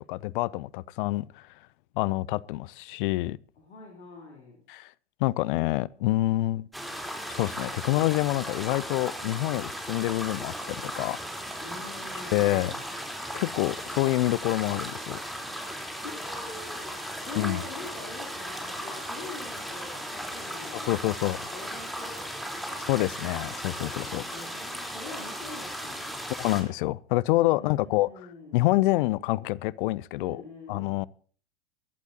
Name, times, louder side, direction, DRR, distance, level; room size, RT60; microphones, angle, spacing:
voice 1, 0.0-1.5 2.0-3.4 4.7-4.9 5.2-6.7 7.3-11.2 12.3-12.7 13.3-15.2 17.4-17.6 20.7-21.4 22.9-24.2 26.4-28.1 28.5-30.4 30.7-31.1, left 18 dB, 50° left, 0.5 m, -27 dB
voice 2, 3.6-4.6 11.6-12.8 16.0-23.0 24.0-26.3 27.5-28.7 30.2-31.0, left 3 dB, 75° left, 3.5 m, -44 dB
sound 1, 6.7-26.6, equal, ahead, 3.7 m, -36 dB
23.5 x 11.5 x 2.8 m
figure-of-eight pair, 95°, 34 cm